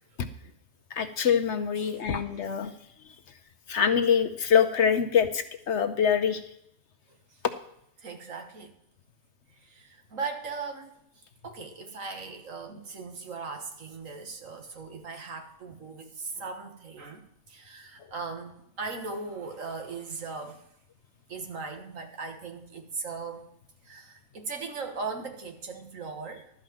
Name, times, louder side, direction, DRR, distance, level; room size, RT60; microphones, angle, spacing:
voice 1, 0.9-2.7 3.7-6.4, left 7 dB, 60° left, 8 dB, 1.0 m, -24 dB
voice 2, 8.0-8.7 9.6-11.0 11.4-20.6 21.3-23.5 23.8-26.5, right 4 dB, 65° right, 5 dB, 1.8 m, -38 dB
12.5 x 5.3 x 7.6 m, 0.75 s
omnidirectional pair, 1.5 m